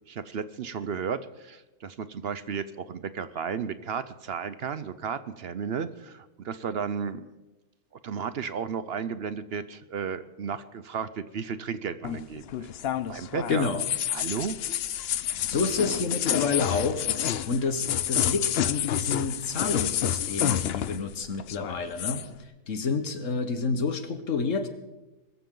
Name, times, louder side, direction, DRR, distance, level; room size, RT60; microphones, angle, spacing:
voice 1, 0.1-7.3 8.0-12.7 13.1-13.7 14.1-14.6 15.9-16.0, right 6 dB, 60° right, 13 dB, 0.8 m, -33 dB
sound 1, 12.0-21.1 21.4-22.3, left 10 dB, 60° left, 0.8 m, -29 dB
voice 2, 13.5-13.8 15.5-17.1 17.4-24.7, left 4 dB, 75° left, 9 dB, 1.6 m, -29 dB
21.5 x 14.0 x 3.8 m, 1.1 s
omnidirectional pair, 1.3 m